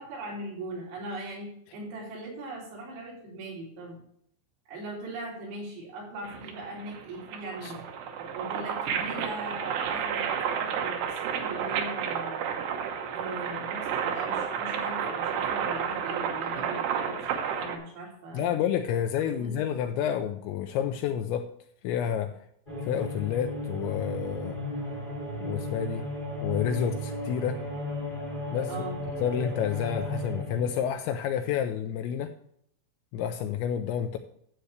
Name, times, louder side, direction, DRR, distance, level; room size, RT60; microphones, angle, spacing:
voice 1, 0.0-4.0 4.7-7.8 8.2-11.0 11.2-12.6 13.1-18.6 19.4-19.6 28.7-29.0, right 2 dB, 85° right, -4 dB, 5.9 m, -40 dB
sound 1, 6.2-17.8, right 7 dB, 70° right, 2.7 m, -31 dB
voice 2, 18.3-21.5 21.8-22.4 22.8-24.6 25.4-26.1 26.4-27.6 28.5-28.7 29.2-32.3 33.1-34.2, left 9 dB, 90° left, 6 dB, 2.6 m, -29 dB
sound 2, 22.7-30.8, left 1 dB, 50° left, 0.6 m, -35 dB
12.5 x 8.0 x 3.2 m, 0.70 s
omnidirectional pair, 5.8 m